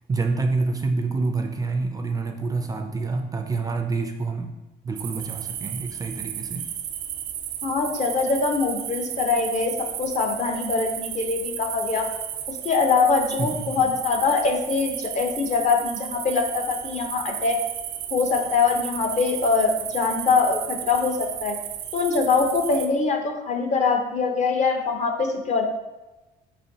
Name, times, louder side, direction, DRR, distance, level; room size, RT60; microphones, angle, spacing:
voice 1, 0.1-4.5 4.8-6.6 13.4-13.9, right 3 dB, 20° right, 4 dB, 0.4 m, -27 dB
sound 1, 5.0-22.9, right 10 dB, 90° right, 0.4 m, -34 dB
voice 2, 7.6-12.1 12.5-17.6 18.1-21.6 21.9-25.7, left 4 dB, 45° left, 4 dB, 0.7 m, -23 dB
4.5 x 4.0 x 2.7 m, 1.1 s
cardioid pair, 110°, 17 cm